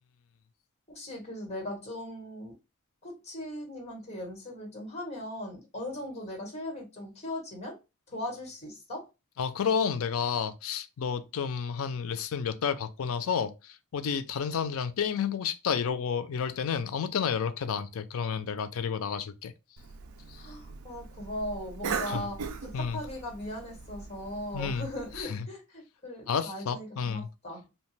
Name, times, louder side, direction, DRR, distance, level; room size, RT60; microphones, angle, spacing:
voice 1, 0.9-2.5 3.0-7.8 8.1-9.1 20.4-27.7, left 1 dB, 30° left, 1.1 m, -39 dB
voice 2, 9.4-19.5 22.1-22.2 22.7-23.0 24.5-24.9 25.2-25.4 26.3-27.3, left 6 dB, 65° left, 0.4 m, -31 dB
Cough, 19.8-25.2, right 5 dB, 70° right, 0.4 m, -39 dB
2.8 x 2.2 x 3.1 m
head